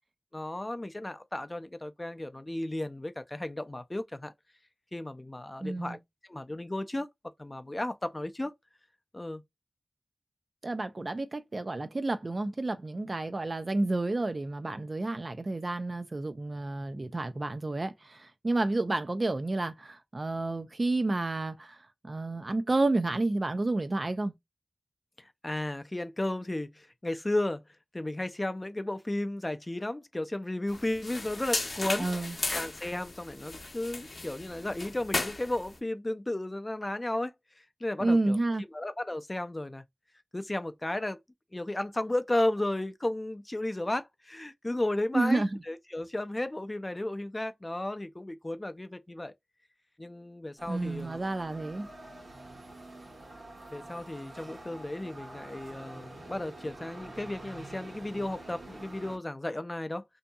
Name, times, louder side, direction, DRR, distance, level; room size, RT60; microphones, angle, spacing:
voice 1, 0.3-4.3 4.9-6.0 6.3-7.1 7.4-8.5 9.1-9.4 25.2-27.6 27.9-32.1 32.5-37.3 37.8-38.4 38.7-39.8 40.3-41.2 41.5-49.3 50.0-51.2 53.7-60.0, left 1 dB, 30° left, 0.4 m, -34 dB
voice 2, 5.6-6.0 10.6-21.8 22.0-24.3 32.0-32.4 38.0-38.6 45.1-45.5 50.7-51.9, right 2 dB, 50° right, 0.4 m, -30 dB
sound 1, 30.7-35.8, left 2 dB, 65° left, 0.7 m, -36 dB
sound 2, 50.6-59.2, right 2 dB, 85° right, 1.3 m, -47 dB
2.7 x 2.6 x 2.2 m
cardioid pair, 45°, 0 cm